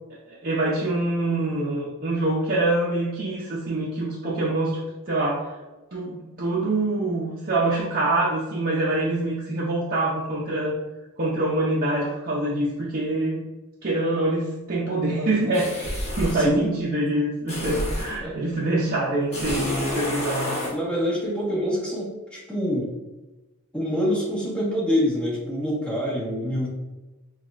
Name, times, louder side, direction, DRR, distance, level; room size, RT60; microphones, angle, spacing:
voice 1, 0.3-4.8 5.1-5.5 5.9-10.8 11.2-13.4 13.8-20.6, right 2 dB, 40° right, -6 dB, 0.5 m, -25 dB
sound 1, 15.5-16.5 17.5-18.2 19.3-20.8, left 1 dB, 30° left, 1.2 m, -28 dB
voice 2, 16.3-16.7 18.2-18.4 20.7-22.9 23.7-26.7, equal, 5° left, -7 dB, 1.2 m, -26 dB
6.0 x 2.3 x 2.4 m, 1.1 s
head